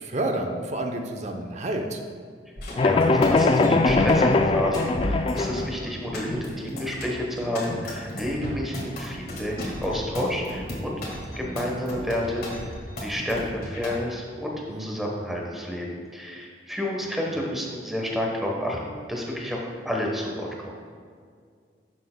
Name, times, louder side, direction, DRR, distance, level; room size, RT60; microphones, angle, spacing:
voice 1, 0.0-2.0 14.7-15.0, right 1 dB, 40° right, 4 dB, 0.7 m, -29 dB
sound 1, 2.6-13.9, equal, 60° left, 1.7 m, -34 dB
sound 2, 2.8-5.7, left 3 dB, 30° left, 0.3 m, -21 dB
voice 2, 2.8-11.0 11.4-12.5 13.0-20.7, left 1 dB, ahead, -1 dB, 1.0 m, -30 dB
11.0 x 6.6 x 2.2 m, 2.1 s
head